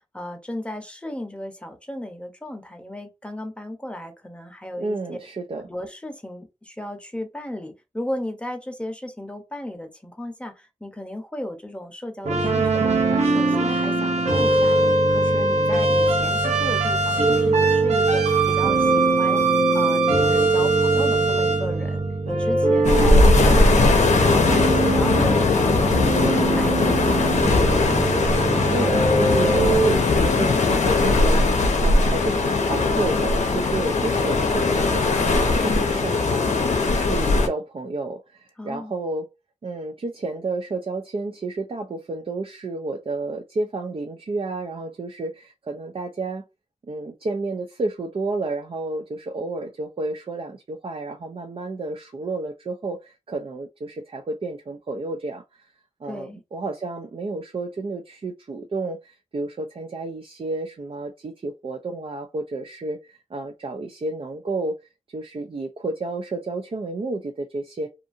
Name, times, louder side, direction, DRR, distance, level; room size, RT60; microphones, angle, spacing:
voice 1, 0.1-5.2 5.7-14.9 15.1-19.4 19.7-25.4 25.8-27.6 38.6-38.9 56.0-56.4, left 1 dB, 10° left, 0.7 m, -35 dB
voice 2, 4.8-5.7 28.7-39.3 39.6-46.4 46.9-55.7 56.0-64.8 65.1-67.9, right 2 dB, 50° right, 0.4 m, -31 dB
sound 1, 12.2-30.0, right 3 dB, 70° right, 0.7 m, -21 dB
sound 2, 22.8-37.5, left 3 dB, 80° left, 0.6 m, -19 dB
2.6 x 2.5 x 2.5 m
cardioid pair, 60°, 12 cm